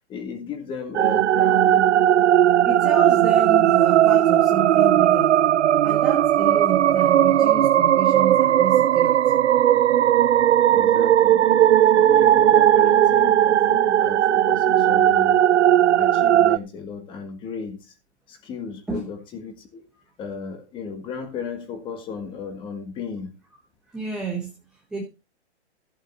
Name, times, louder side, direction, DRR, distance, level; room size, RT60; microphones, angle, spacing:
voice 1, 0.1-1.9 10.7-15.4 15.9-17.9 18.3-19.9 20.2-23.3, left 6 dB, 15° left, 1.6 m, -35 dB
sound 1, 0.9-16.6, right 11 dB, 75° right, 0.6 m, -17 dB
voice 2, 2.6-5.4 5.8-9.4 18.9-19.1 23.9-25.0, right 4 dB, ahead, 0.9 m, -31 dB
14.0 x 7.7 x 4.2 m
hypercardioid pair, 165°, 35 cm